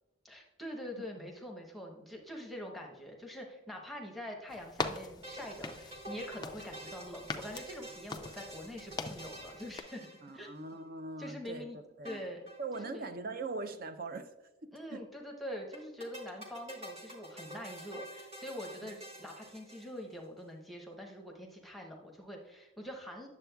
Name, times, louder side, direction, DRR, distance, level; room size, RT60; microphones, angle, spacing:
voice 1, 0.2-10.1 10.3-10.5 11.2-11.8 12.0-12.5 12.8-13.1 14.7-23.3, left 1 dB, ahead, 0.8 m, -44 dB
sound 1, 4.5-9.8, left 3 dB, 20° left, 0.3 m, -42 dB
sound 2, 5.0-10.7 12.1-12.9 13.2-13.3 13.4-13.5 15.7-20.2, right 1 dB, 30° right, 1.3 m, -48 dB
voice 2, 10.2-11.7 12.0-12.2 12.6-14.3 14.9-15.0 18.8-18.9, right 3 dB, 45° right, 0.5 m, -40 dB
9.5 x 7.0 x 2.3 m
head